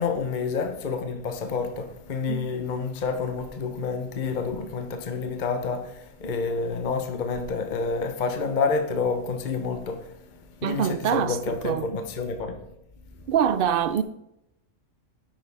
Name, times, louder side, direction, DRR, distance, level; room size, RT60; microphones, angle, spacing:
voice 1, 0.0-12.6, left 4 dB, 40° left, 1.0 m, -29 dB
voice 2, 10.6-11.9 13.3-14.0, right 8 dB, 65° right, 0.5 m, -25 dB
10.5 x 8.2 x 3.5 m
omnidirectional pair, 1.4 m